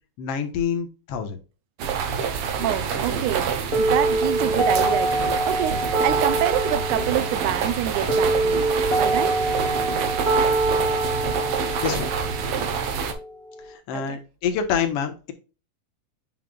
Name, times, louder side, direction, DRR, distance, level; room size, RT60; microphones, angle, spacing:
voice 1, 0.2-1.4 11.8-12.1 13.7-15.3, left 7 dB, 60° left, 1.9 m, -27 dB
sound 1, 1.8-13.1, right 6 dB, 65° right, 1.5 m, -27 dB
voice 2, 2.6-9.5 13.9-14.2, right 12 dB, 80° right, 2.1 m, -27 dB
sound 2, 3.7-13.7, right 2 dB, 25° right, 1.1 m, -25 dB
7.5 x 5.6 x 2.3 m
omnidirectional pair, 3.5 m